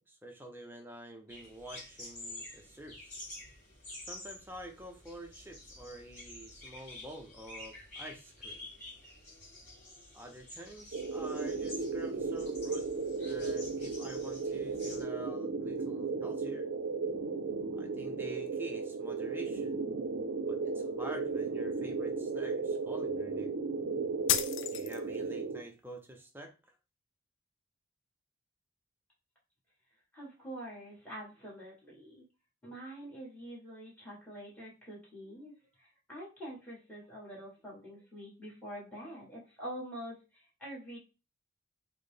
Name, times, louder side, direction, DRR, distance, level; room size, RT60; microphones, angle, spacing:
voice 1, 0.1-3.1 4.0-8.6 10.1-12.9 13.2-16.7 17.8-19.9 20.5-23.5 24.7-26.5, right 1 dB, 10° right, 3 dB, 0.5 m, -47 dB
sound 1, 1.3-15.0, left 1 dB, 35° left, 1.8 m, -49 dB
sound 2, 10.9-25.6, right 4 dB, 60° right, 0.5 m, -35 dB
sound 3, 24.3-25.3, left 9 dB, 55° left, 0.3 m, -32 dB
voice 2, 30.1-32.2 32.6-41.0, right 1 dB, 5° left, -5 dB, 1.5 m, -46 dB
4.2 x 2.1 x 3.3 m, 0.30 s
head